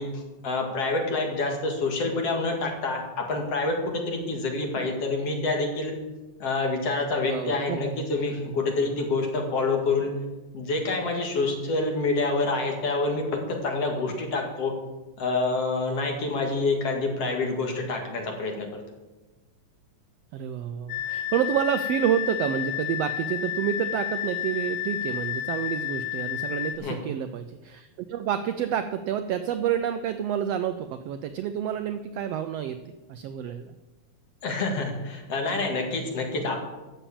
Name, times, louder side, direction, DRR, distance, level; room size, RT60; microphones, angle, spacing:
voice 1, 0.0-3.0 3.3-5.9 6.4-10.1 10.5-14.7 15.2-18.8 26.8-27.0 34.4-36.6, left 3 dB, 55° left, 1 dB, 3.0 m, -27 dB
voice 2, 7.2-7.9 20.3-33.7, right 9 dB, 90° right, 10 dB, 1.4 m, -29 dB
sound 1, 20.9-26.8, left 11 dB, 80° left, 2.2 m, -31 dB
12.5 x 7.2 x 8.7 m, 1.1 s
omnidirectional pair, 3.6 m